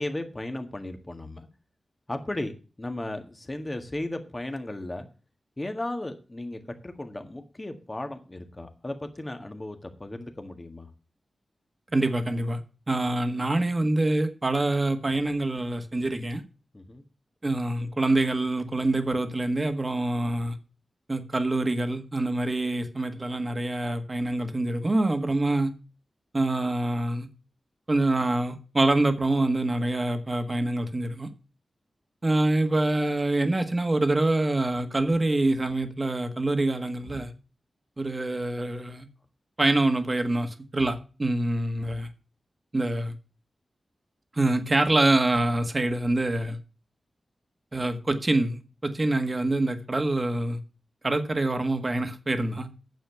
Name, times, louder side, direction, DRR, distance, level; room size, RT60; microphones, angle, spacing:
voice 1, 0.0-1.5 2.1-5.1 5.6-10.9 16.7-17.0, left 1 dB, 25° left, 1.7 m, -35 dB
voice 2, 11.9-12.6 12.9-16.4 17.4-20.6 21.1-25.7 26.3-27.3 27.9-31.3 32.2-37.3 38.0-39.0 39.6-42.1 42.7-43.1 44.3-46.6 47.7-50.6 51.0-52.7, right 2 dB, 30° right, 1.6 m, -25 dB
9.3 x 6.9 x 6.9 m
wide cardioid pair, 75°, 0 cm